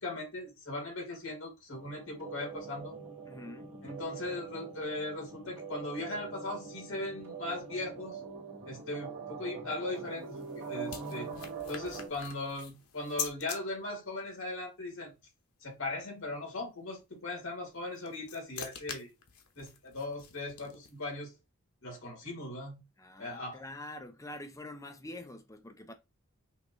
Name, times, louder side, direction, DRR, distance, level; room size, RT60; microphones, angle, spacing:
voice 1, 0.0-2.9 3.8-8.2 8.6-11.3 11.7-15.1 15.6-19.1 19.6-21.3 21.8-22.8 23.2-23.6, left 2 dB, 70° left, 2.5 m, -39 dB
sound 1, 1.7-12.1, right 5 dB, 65° right, 1.9 m, -43 dB
voice 2, 3.3-3.7 23.0-25.9, left 1 dB, 15° left, 0.6 m, -45 dB
sound 2, 10.0-13.6 17.7-21.1, left 8 dB, 90° left, 1.0 m, -44 dB
5.9 x 2.6 x 3.1 m
head